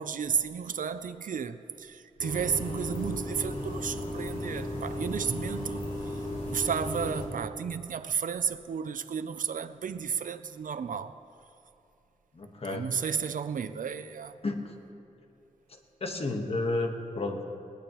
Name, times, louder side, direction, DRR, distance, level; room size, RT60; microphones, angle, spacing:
voice 1, 0.0-6.2 6.5-11.2 12.6-14.4, right 7 dB, 85° right, 0.5 m, -33 dB
sound 1, 2.2-7.3, left 1 dB, 75° left, 2.8 m, -35 dB
voice 2, 12.3-12.9 14.4-14.7 15.7-17.4, left 2 dB, 45° left, 1.4 m, -32 dB
20.0 x 19.0 x 3.1 m
wide cardioid pair, 120°, 13 cm